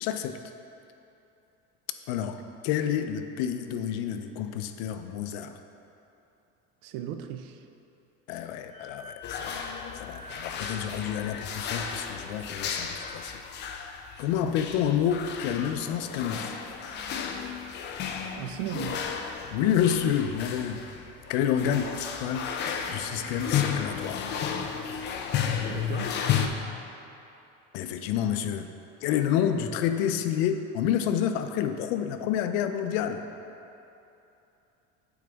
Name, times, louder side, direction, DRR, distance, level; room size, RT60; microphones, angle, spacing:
voice 1, 0.0-0.4 2.1-5.6 8.3-9.6 9.9-13.4 14.2-16.5 19.5-20.8 21.3-22.5 22.9-24.3 27.7-28.7 29.0-33.2, left 9 dB, 90° left, 8 dB, 0.5 m, -29 dB
voice 2, 6.8-7.6 14.4-14.5 18.4-19.0 21.6-21.9 25.7-26.3, right 10 dB, 80° right, 7 dB, 0.5 m, -36 dB
Wind instrument woodwind instrument, 8.6-13.3, left 4 dB, ahead, 1.3 m, -47 dB
sound 1, 9.2-26.5, left 7 dB, 35° left, 0.4 m, -33 dB
8.4 x 4.0 x 3.4 m, 2.9 s
cardioid pair, 145°, 31 cm